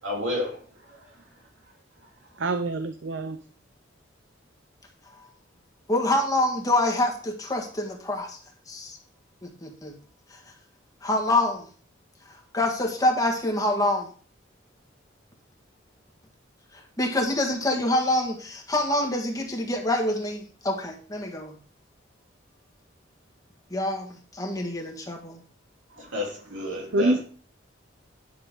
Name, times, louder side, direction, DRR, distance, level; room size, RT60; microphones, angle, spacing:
voice 1, 0.0-1.2 25.9-27.2, left 1 dB, 90° right, 3.4 m, -32 dB
voice 2, 2.4-3.4 26.9-27.2, right 2 dB, 70° right, 0.6 m, -25 dB
voice 3, 5.9-8.4 8.7-9.0 9.4-9.9 11.0-11.6 12.5-14.1 17.0-21.6 23.7-25.4, left 1 dB, 20° left, 1.6 m, -26 dB
10.5 x 6.8 x 3.7 m
head